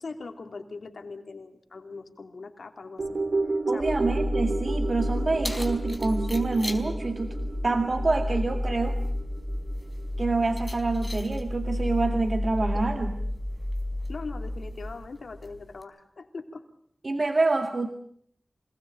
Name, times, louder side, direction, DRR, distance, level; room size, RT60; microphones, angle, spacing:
voice 1, 0.0-3.2 3.7-4.1 12.6-12.8 14.1-16.6, left 3 dB, 90° left, 5 dB, 2.8 m, -41 dB
sound 1, 3.0-11.4 11.7-11.8, right 3 dB, 75° right, 2.8 m, -33 dB
voice 2, 3.7-7.4 7.6-9.0 10.2-13.2 17.0-17.9, right 3 dB, 55° right, 5 dB, 2.1 m, -27 dB
sound 2, 3.8-14.9, left 1 dB, 5° left, 3.6 m, -31 dB
Keys jangling, 4.8-15.8, left 1 dB, 20° left, 4.1 m, -45 dB
27.0 x 19.0 x 8.9 m, 0.66 s
wide cardioid pair, 75°, 0 cm